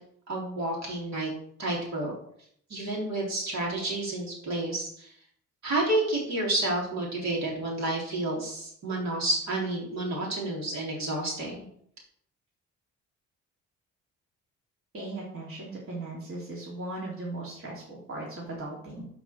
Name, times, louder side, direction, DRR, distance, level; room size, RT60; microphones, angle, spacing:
voice 1, 0.3-1.3 1.6-2.1 2.7-5.1 5.6-11.7, right 2 dB, 60° right, -3 dB, 4.0 m, -30 dB
voice 2, 14.9-19.1, right 2 dB, 45° right, -5 dB, 3.5 m, -38 dB
12.0 x 5.0 x 4.7 m, 0.67 s
cardioid pair, 90°, 30 cm